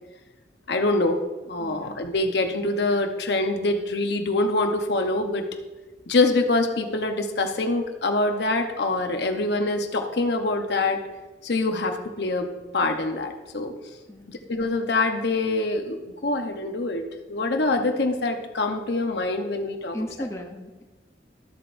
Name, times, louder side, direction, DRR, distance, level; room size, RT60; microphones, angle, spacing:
voice 1, 0.7-1.2 1.4-5.4 6.1-11.0 11.4-12.5 12.7-13.7 14.3-17.0 17.3-20.0, left 2 dB, 70° left, 5 dB, 0.9 m, -25 dB
voice 2, 1.6-2.0 14.1-14.4 19.9-20.8, left 1 dB, 15° left, 2 dB, 0.6 m, -35 dB
13.0 x 7.8 x 2.6 m, 1.2 s
head